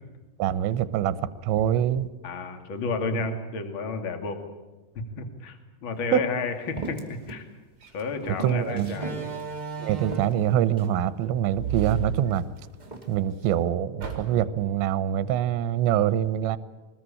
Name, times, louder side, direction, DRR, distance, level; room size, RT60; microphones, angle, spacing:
voice 1, 0.4-2.1 3.1-3.2 6.1-6.2 8.4-9.0 9.8-12.4 13.1-16.6, right 11 dB, 80° right, 15 dB, 3.2 m, -24 dB
voice 2, 2.2-4.4 4.9-7.4 7.9-9.3, left 4 dB, 35° left, 6 dB, 2.4 m, -31 dB
sound 1, 5.9-6.0 6.8-7.5 7.8-9.2 9.7-9.8 10.1-11.0 11.7-12.4 12.8-13.1, right 3 dB, 15° right, 1.7 m, -39 dB
Slam, 7.8-8.0 8.9-10.5 11.5-12.9 13.3-13.4 14.0-14.6, right 7 dB, 30° right, 3.7 m, -33 dB
23.5 x 20.5 x 8.6 m, 1.2 s
omnidirectional pair, 5.2 m